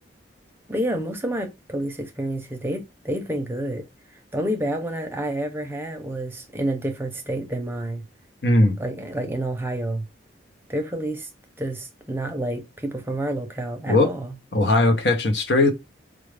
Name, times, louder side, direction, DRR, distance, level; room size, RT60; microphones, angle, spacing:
voice 1, 0.7-3.8 4.3-8.0 8.8-10.1 10.7-11.3 11.6-14.3, right 1 dB, 10° right, 0.6 m, -29 dB
voice 2, 8.4-8.8 13.9-14.1 14.5-15.7, left 2 dB, 65° left, 0.8 m, -18 dB
4.7 x 2.4 x 3.3 m
head